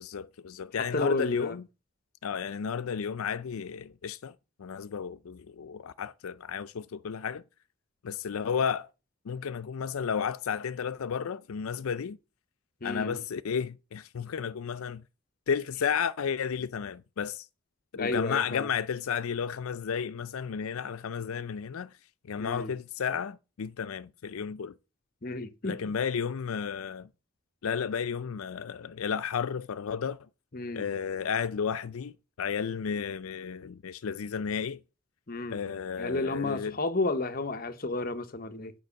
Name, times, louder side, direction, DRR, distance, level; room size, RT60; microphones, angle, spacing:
voice 1, 0.0-1.6 2.2-4.3 4.6-7.4 8.0-8.9 9.2-12.2 12.8-15.0 15.5-17.5 17.9-21.9 22.3-24.7 25.6-27.1 27.6-30.3 30.7-34.8 35.5-36.8, left 7 dB, 85° left, 0.5 m, -33 dB
voice 2, 0.9-1.6 12.8-13.2 17.9-18.7 22.4-22.7 25.2-25.8 30.5-30.9 35.3-35.6 36.0-38.7, left 2 dB, 45° left, 0.9 m, -32 dB
9.3 x 5.3 x 6.9 m
head